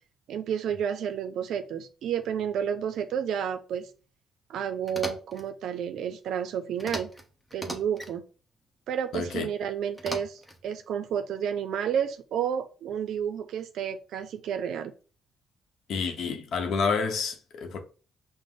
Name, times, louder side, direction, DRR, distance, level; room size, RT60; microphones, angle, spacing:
voice 1, 0.3-3.9 4.5-7.1 7.5-8.2 8.9-14.9, right 8 dB, 75° right, 0.4 m, -31 dB
sound 1, 4.9-5.4 6.8-7.2 7.5-8.1 10.0-10.6, left 1 dB, 10° left, 0.9 m, -37 dB
voice 2, 9.1-9.5 15.9-17.8, left 5 dB, 70° left, 0.7 m, -29 dB
5.0 x 2.0 x 3.7 m
cardioid pair, 90°, 0 cm